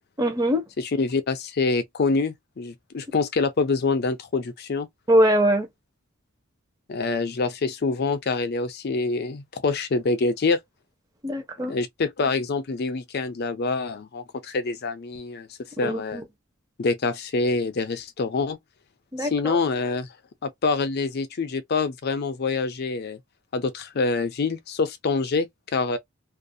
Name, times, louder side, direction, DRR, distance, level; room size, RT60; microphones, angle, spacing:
voice 1, 0.2-0.6 5.1-5.7 11.2-11.7 15.8-16.2 19.1-19.6, equal, 15° right, 0.6 m, -22 dB
voice 2, 0.8-4.9 6.9-10.6 11.7-15.5 15.8-16.2 16.8-18.6 19.2-20.1 20.4-23.2 23.5-25.5 25.7-26.0, left 3 dB, 50° left, 0.5 m, -26 dB
2.4 x 2.1 x 2.6 m
head